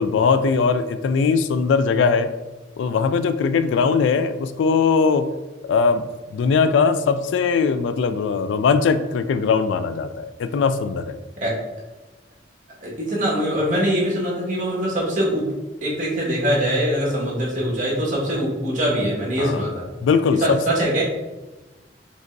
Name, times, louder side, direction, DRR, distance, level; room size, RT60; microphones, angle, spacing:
voice 1, 0.0-2.3 2.8-5.3 5.6-11.2 19.4-19.7 20.0-20.6, left 5 dB, 75° left, 12 dB, 0.3 m, -20 dB
voice 2, 12.8-15.5 15.8-19.9 20.4-21.0, equal, 45° right, -5 dB, 1.5 m, -23 dB
5.1 x 3.5 x 2.6 m, 1.1 s
head